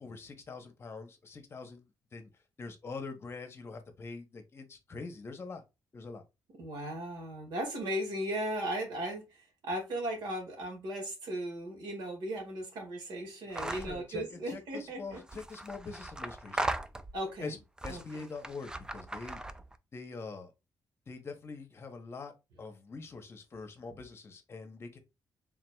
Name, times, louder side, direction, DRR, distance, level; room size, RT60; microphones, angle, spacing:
voice 1, 0.0-2.3 2.6-5.6 5.9-6.2 13.6-16.7 17.4-17.6 17.8-19.4 19.9-20.5 21.1-22.3 22.6-25.0, left 4 dB, 35° left, 1.0 m, -44 dB
voice 2, 6.5-15.2 17.1-17.6 17.9-18.2, right 1 dB, 85° right, 1.9 m, -37 dB
sound 1, 13.5-14.0 15.1-17.3 17.8-19.8, right 2 dB, 10° right, 0.3 m, -38 dB
4.7 x 3.7 x 2.3 m
cardioid pair, 135°, 7 cm